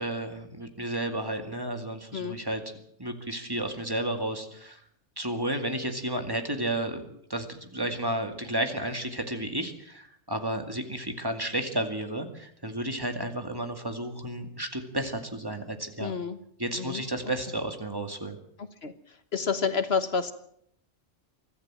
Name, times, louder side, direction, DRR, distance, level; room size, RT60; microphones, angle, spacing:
voice 1, 0.0-2.6 3.0-4.8 5.2-16.1 16.6-18.4, right 1 dB, 20° right, 6 dB, 2.3 m, -32 dB
voice 2, 16.0-16.4 16.7-17.0 18.8-18.9 19.3-20.3, left 5 dB, 65° left, 11 dB, 1.4 m, -28 dB
24.5 x 14.5 x 7.6 m, 0.69 s
omnidirectional pair, 1.2 m